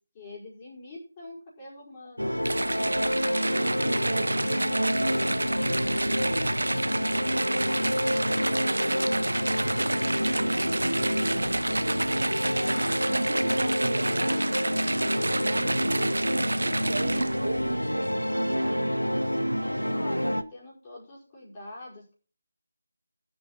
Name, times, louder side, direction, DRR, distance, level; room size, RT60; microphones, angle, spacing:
voice 1, 0.1-4.6 19.9-22.1, left 2 dB, 20° left, -5 dB, 5.3 m, -46 dB
sound 1, 2.2-20.4, equal, 85° left, 1.3 m, -28 dB
sound 2, 2.4-17.6, right 2 dB, 60° right, 0.7 m, -30 dB
voice 2, 3.6-4.9 10.2-12.5 13.1-19.0, right 3 dB, 40° right, 2 dB, 2.4 m, -37 dB
17.0 x 8.4 x 4.4 m, 0.40 s
figure-of-eight pair, 160°, 0 cm